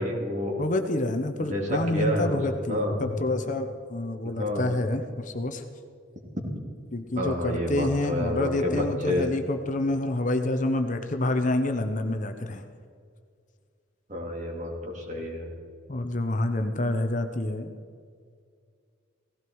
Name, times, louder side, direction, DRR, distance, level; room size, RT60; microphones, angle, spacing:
voice 1, 0.0-0.5 1.4-2.4 2.7-3.0 4.4-4.7 7.1-9.3 14.1-15.5, equal, 40° right, 0 dB, 3.0 m, -29 dB
voice 2, 0.6-5.6 6.9-12.6 15.9-17.7, left 2 dB, 40° left, 6 dB, 0.9 m, -28 dB
18.0 x 16.0 x 4.7 m, 2.2 s
head